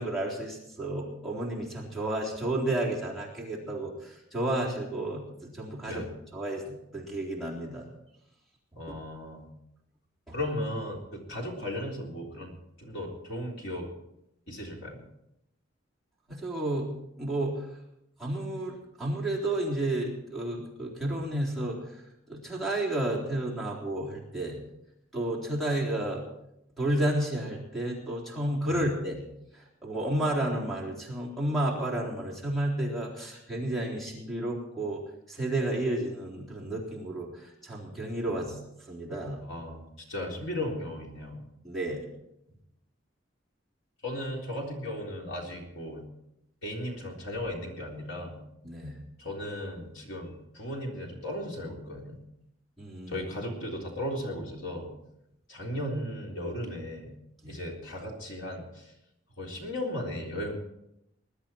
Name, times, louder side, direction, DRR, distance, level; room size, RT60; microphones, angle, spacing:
voice 1, 0.0-6.0 6.3-7.8 10.3-10.4 16.3-16.9 17.2-17.7 18.2-22.0 22.3-24.6 25.1-26.2 26.8-29.2 29.5-35.0 35.3-38.6 38.9-39.4 41.6-42.0 48.6-49.0 52.8-53.3 57.4-57.6, right 1 dB, ahead, -6 dB, 3.6 m, -31 dB
voice 2, 8.7-9.5 10.3-13.9 14.5-15.1 28.7-28.8 38.3-38.6 39.4-41.4 44.0-46.1 46.6-48.4 49.2-52.2 53.1-54.9 55.5-57.1 57.5-58.9 59.4-60.5, left 1 dB, 70° left, -1 dB, 3.8 m, -36 dB
20.5 x 11.5 x 4.5 m, 0.82 s
head